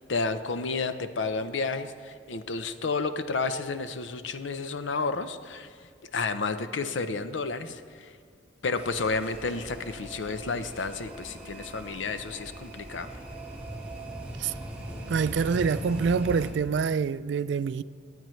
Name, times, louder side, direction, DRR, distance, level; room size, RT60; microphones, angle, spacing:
voice 1, 0.0-5.7 6.1-8.1 8.6-13.1, left 4 dB, 80° left, 0.6 m, -31 dB
sound 1, 8.7-16.5, right 1 dB, 5° right, 1.5 m, -40 dB
voice 2, 15.1-17.8, right 5 dB, 65° right, 0.3 m, -26 dB
24.0 x 9.1 x 3.2 m
head